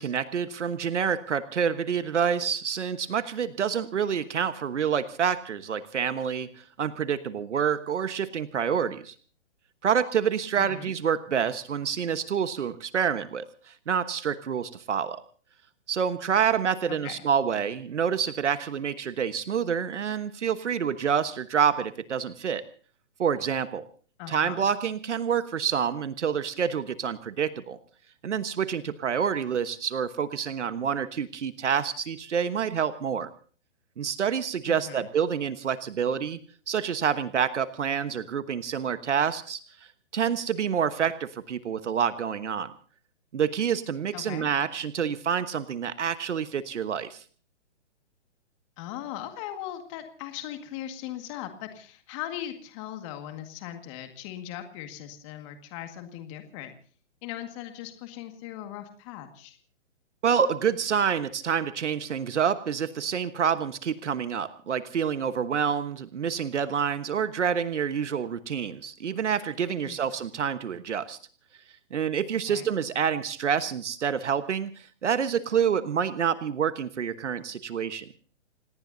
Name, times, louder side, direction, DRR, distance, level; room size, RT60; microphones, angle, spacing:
voice 1, 0.0-9.1 9.8-15.2 15.9-22.6 23.2-23.8 24.3-27.8 28.2-33.3 34.0-36.4 36.7-39.6 40.1-42.7 43.3-47.2 60.2-71.2 71.9-78.1, right 7 dB, 75° right, 11 dB, 1.3 m, -27 dB
voice 2, 10.6-10.9 16.9-17.1 24.2-24.6 34.7-35.0 44.1-44.5 48.8-56.7 57.2-59.6 69.8-70.1 72.5-72.7, left 12 dB, 25° left, 6 dB, 1.9 m, -39 dB
28.5 x 18.5 x 2.7 m, 0.41 s
hypercardioid pair, 150°, 36 cm